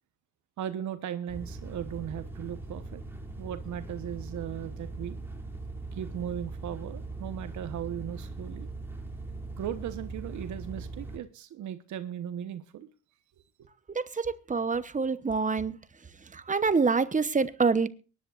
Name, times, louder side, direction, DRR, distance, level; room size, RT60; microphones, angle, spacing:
voice 1, 0.6-3.0 3.4-5.2 5.9-8.7 9.6-12.9, right 10 dB, 70° right, 1.2 m, -37 dB
sound 1, 1.3-11.2, right 3 dB, 10° right, 3.0 m, -40 dB
voice 2, 13.9-15.8 16.3-17.9, right 4 dB, 25° right, 1.0 m, -26 dB
23.0 x 11.0 x 2.5 m
cardioid pair, 90°, 30 cm